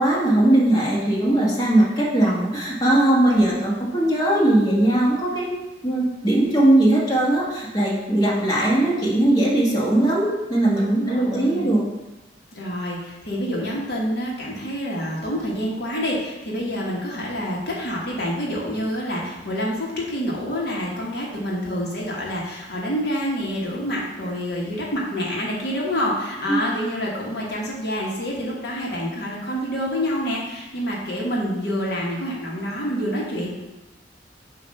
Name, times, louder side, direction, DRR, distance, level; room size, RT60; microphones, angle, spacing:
voice 1, 0.0-5.5 5.8-11.8 26.5-26.6, right 1 dB, 20° left, -5 dB, 1.3 m, -19 dB
voice 2, 10.8-11.7 12.5-33.5, equal, 65° left, -3 dB, 1.2 m, -27 dB
7.4 x 2.6 x 5.3 m, 1.1 s
head